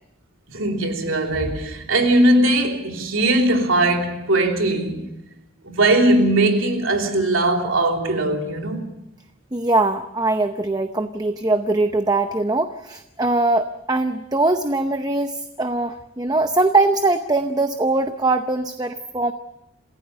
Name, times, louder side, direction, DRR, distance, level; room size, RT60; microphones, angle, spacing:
voice 1, 0.5-5.1 5.7-8.8, right 1 dB, 85° right, 3.2 m, -19 dB
voice 2, 9.5-19.3, right 2 dB, 20° right, 0.7 m, -21 dB
27.5 x 16.0 x 6.9 m
head